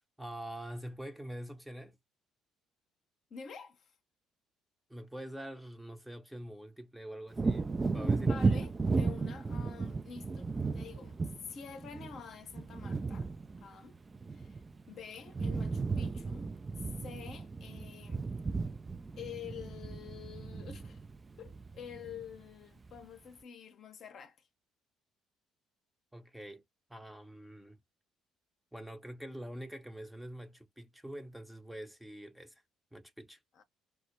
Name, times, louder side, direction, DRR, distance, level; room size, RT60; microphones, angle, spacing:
voice 1, 0.2-2.0 4.9-8.7 26.1-26.6 26.9-27.8 28.7-32.6 32.9-33.4, right 1 dB, 5° right, 0.7 m, -45 dB
voice 2, 3.3-3.9 7.9-13.3 13.6-14.0 14.3-14.6 14.9-16.5 16.8-18.2 19.2-21.0 21.4-24.4 33.5-33.6, left 7 dB, 55° left, 0.7 m, -48 dB
Wind / Thunder, 7.3-14.9 15.2-22.4 22.8-23.0, right 4 dB, 30° right, 0.3 m, -35 dB
2.2 x 2.0 x 3.0 m
hypercardioid pair, 50°, 0 cm